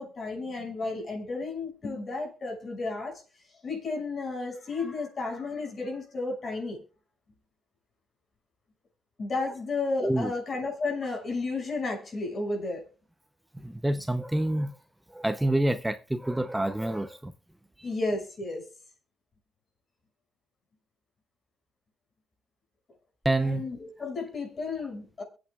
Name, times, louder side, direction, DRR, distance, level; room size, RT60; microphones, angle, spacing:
voice 1, 0.0-3.2 3.6-6.8 9.2-12.8 17.8-18.6 23.4-25.2, left 3 dB, 45° left, 6.2 m, -32 dB
voice 2, 13.6-14.8 15.1-17.3 17.8-17.9 23.2-23.6, right 1 dB, 5° right, 0.7 m, -27 dB
23.5 x 8.8 x 2.4 m
cardioid pair, 90°, 0 cm